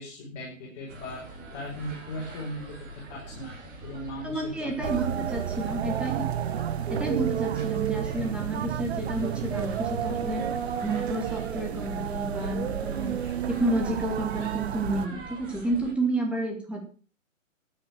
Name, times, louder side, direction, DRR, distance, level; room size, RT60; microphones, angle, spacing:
voice 1, 0.0-3.5 3.8-4.9, left 1 dB, 30° left, -3 dB, 5.6 m, -38 dB
sound 1, 0.9-15.9, right 2 dB, 25° right, 4.5 m, -43 dB
voice 2, 4.2-6.2 6.9-10.4 10.8-13.1 13.5-16.8, right 2 dB, 5° right, 1 dB, 2.8 m, -30 dB
sound 2, 4.8-15.1, right 9 dB, 50° right, 1.0 m, -31 dB
12.5 x 9.6 x 6.2 m, 0.39 s
figure-of-eight pair, 135°, 40 cm